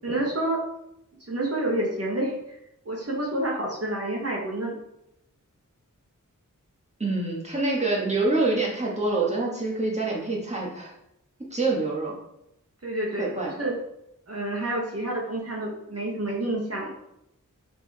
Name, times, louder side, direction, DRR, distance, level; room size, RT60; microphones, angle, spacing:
voice 1, 0.0-0.6 1.3-2.6 2.8-4.7 12.8-13.7 14.3-16.9, right 1 dB, 50° right, -3 dB, 1.6 m, -28 dB
voice 2, 7.0-10.9 11.5-12.1 13.2-13.5, right 2 dB, 20° right, -3 dB, 1.9 m, -26 dB
5.6 x 4.5 x 4.3 m, 0.81 s
wide cardioid pair, 65°, 32 cm